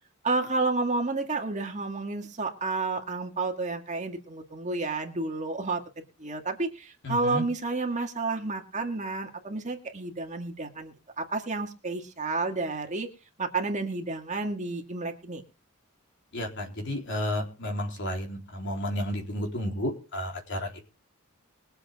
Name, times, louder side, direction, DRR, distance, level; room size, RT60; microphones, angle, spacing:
voice 1, 0.2-5.8 6.2-13.1 13.4-15.4, right 3 dB, 35° right, 3 dB, 2.0 m, -30 dB
voice 2, 7.0-7.5 16.3-20.8, left 1 dB, 55° left, 1 dB, 3.7 m, -32 dB
22.0 x 7.8 x 3.6 m, 0.33 s
head